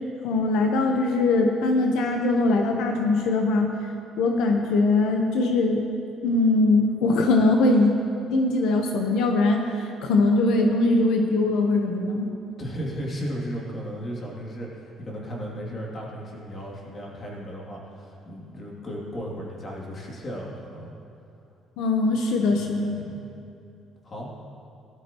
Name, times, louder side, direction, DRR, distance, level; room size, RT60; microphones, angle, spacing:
voice 1, 0.2-3.7 4.2-5.8 6.2-7.9 8.3-12.3 21.8-23.0, left 2 dB, 90° left, 2 dB, 1.0 m, -21 dB
voice 2, 12.6-20.9 22.5-23.2 24.0-24.4, equal, 30° left, -3 dB, 2.7 m, -35 dB
17.5 x 12.5 x 3.0 m, 2.6 s
cardioid pair, 135°, 0 cm